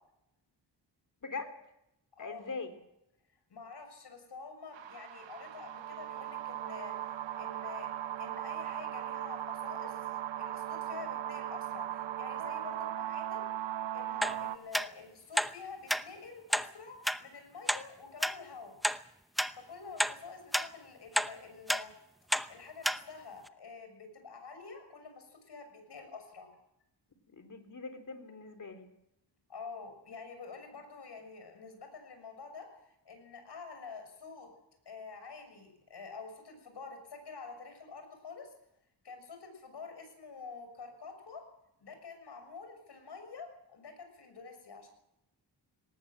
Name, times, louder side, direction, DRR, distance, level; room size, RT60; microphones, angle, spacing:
voice 1, 1.2-1.5 2.2-2.7 27.3-28.9, left 4 dB, 45° left, 8 dB, 3.7 m, -42 dB
voice 2, 2.2-2.5 3.5-6.9 7.3-7.9 8.2-10.0 10.4-13.5 13.9-18.8 19.5-21.9 22.5-26.5 29.5-32.7 33.0-34.5 34.8-38.5 39.0-41.4 41.8-44.9, left 4 dB, 65° left, 6 dB, 6.8 m, -48 dB
sound 1, 4.7-14.6, right 12 dB, 85° right, 1.2 m, -38 dB
sound 2, 14.2-14.4 14.7-14.9 15.4-15.5 15.9-16.0 16.5-16.7 17.1-17.2 17.7-17.8 18.2-18.3 18.8-19.0 19.4-19.5 20.0-20.2 20.5-20.7 21.2-21.3 21.7-21.8 22.3-22.5 22.8-23.0 23.5-23.6, equal, ahead, 0.7 m, -29 dB
19.5 x 19.0 x 7.7 m, 0.84 s
cardioid pair, 95°, 43 cm